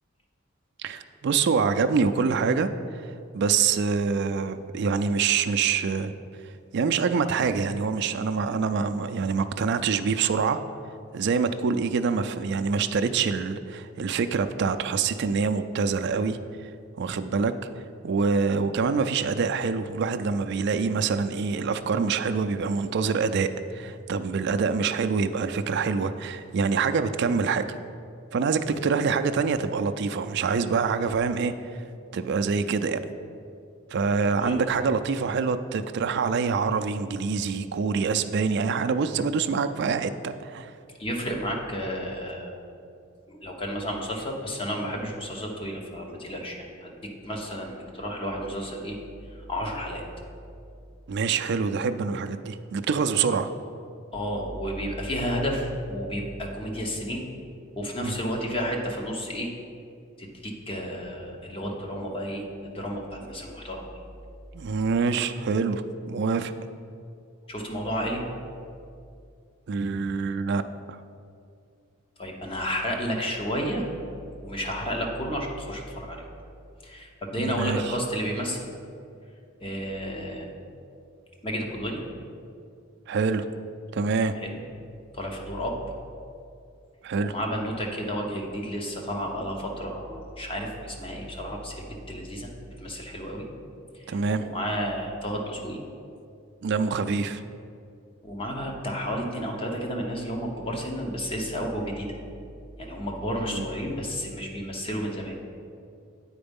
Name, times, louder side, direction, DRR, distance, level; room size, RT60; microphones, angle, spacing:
voice 1, 0.8-6.1 6.4-10.6 11.1-16.7 17.0-17.5 18.0-27.7 28.3-31.8 32.1-33.0 33.9-40.7 51.1-53.5 58.0-58.2 64.5-66.5 69.7-70.6 70.9-71.0 77.4-77.9 83.1-83.5 83.9-84.3 87.0-87.3 94.1-94.5 96.6-97.4 103.5-103.7, right 5 dB, 55° right, 9 dB, 0.4 m, -26 dB
voice 2, 41.0-42.5 43.3-49.0 49.5-50.0 54.1-57.2 57.8-59.5 60.2-64.0 67.5-68.2 72.2-73.9 74.4-76.2 76.8-78.7 79.6-80.5 81.4-82.0 84.4-84.5 85.1-85.7 87.2-92.5 92.8-93.5 94.0-95.8 98.2-102.1 102.8-105.4, equal, 25° left, 1 dB, 0.9 m, -31 dB
8.7 x 4.5 x 5.3 m, 2.4 s
head